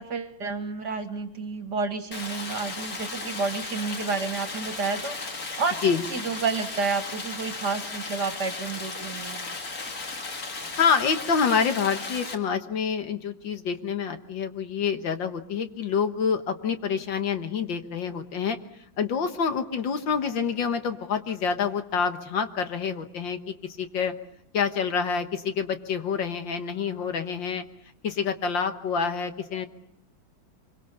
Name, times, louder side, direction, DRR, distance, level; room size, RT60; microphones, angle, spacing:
voice 1, 0.0-9.4, right 4 dB, 55° right, 9 dB, 2.2 m, -30 dB
Stream, 2.1-12.3, left 3 dB, 45° left, 2.5 m, -35 dB
voice 2, 10.8-18.6 19.0-24.1 24.5-27.6 28.0-29.7, left 6 dB, 65° left, 8 dB, 2.0 m, -27 dB
25.0 x 23.5 x 6.9 m, 0.73 s
omnidirectional pair, 2.3 m